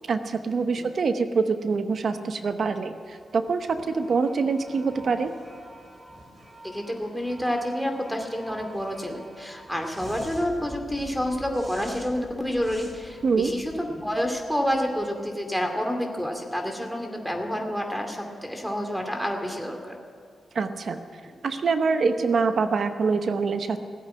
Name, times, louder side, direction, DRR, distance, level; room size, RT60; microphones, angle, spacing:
voice 1, 0.1-5.3 13.2-13.5 20.5-21.0 21.4-23.8, right 4 dB, 65° right, 9 dB, 0.9 m, -25 dB
sound 1, 3.0-15.4, right 1 dB, 25° right, 3.9 m, -47 dB
voice 2, 6.6-20.0 21.2-21.3, equal, ahead, 4 dB, 2.6 m, -29 dB
16.5 x 8.4 x 9.8 m, 2.1 s
cardioid pair, 60°, 0 cm